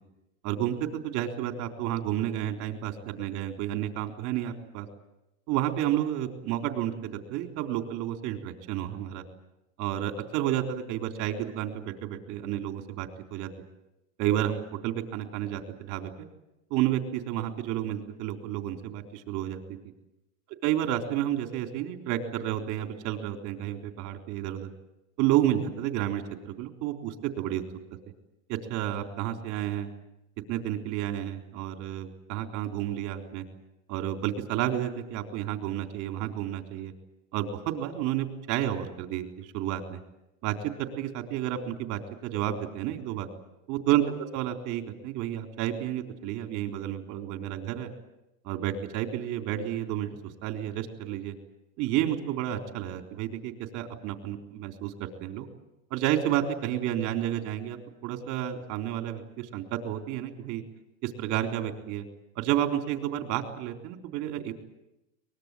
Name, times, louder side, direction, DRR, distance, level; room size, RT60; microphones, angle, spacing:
voice 1, 0.4-4.9 5.5-9.2 9.8-13.5 14.2-16.1 16.7-19.6 20.6-24.7 25.2-27.6 28.5-29.9 30.5-33.4 33.9-36.9 37.3-40.0 40.4-43.3 43.7-47.9 48.4-51.4 51.8-55.5 55.9-57.8 58.0-60.6 61.0-62.0 62.4-64.5, right 12 dB, 50° right, 5 dB, 3.8 m, -31 dB
24.0 x 20.5 x 9.1 m, 0.92 s
supercardioid pair, 145°, 39 cm